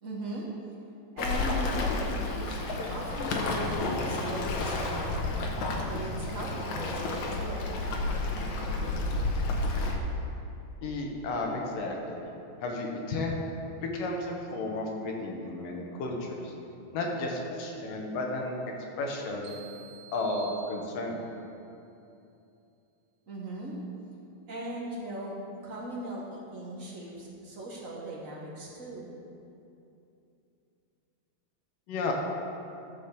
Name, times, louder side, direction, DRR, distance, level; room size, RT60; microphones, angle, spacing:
voice 1, 0.0-0.5 1.1-5.5 5.9-7.7 23.3-23.7 24.5-29.1, right 1 dB, 45° right, -4 dB, 1.0 m, -38 dB
Waves surf, 1.2-10.0, left 2 dB, 65° left, 2.3 m, -31 dB
voice 2, 10.8-12.3 12.6-13.4 13.8-16.5 16.9-18.6 19.0-19.6 20.1-21.2 31.9-32.1, left 2 dB, 85° left, 0 dB, 2.8 m, -33 dB
sound 1, 19.4-21.4, right 8 dB, 75° right, 2.9 m, -49 dB
13.5 x 5.2 x 6.8 m, 2.7 s
omnidirectional pair, 3.8 m